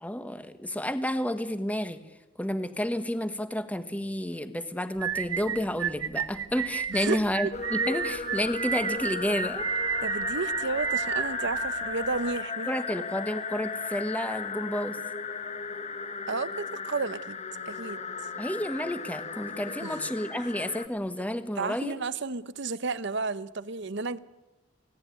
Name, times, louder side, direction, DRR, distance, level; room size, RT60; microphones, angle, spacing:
voice 1, 0.0-2.0 2.4-9.7 12.7-15.0 18.4-22.0, equal, 5° left, 9 dB, 1.3 m, -31 dB
sound 1, 5.0-12.4, right 8 dB, 85° right, 1.0 m, -32 dB
voice 2, 6.9-7.5 10.0-13.0 16.3-17.4 17.7-18.0 19.7-20.1 20.3-20.5 21.2-21.3 21.6-24.2, right 4 dB, 60° right, 15 dB, 0.9 m, -32 dB
sound 2, 7.5-20.9, left 5 dB, 35° left, 1.2 m, -35 dB
29.5 x 17.5 x 9.6 m, 1.1 s
head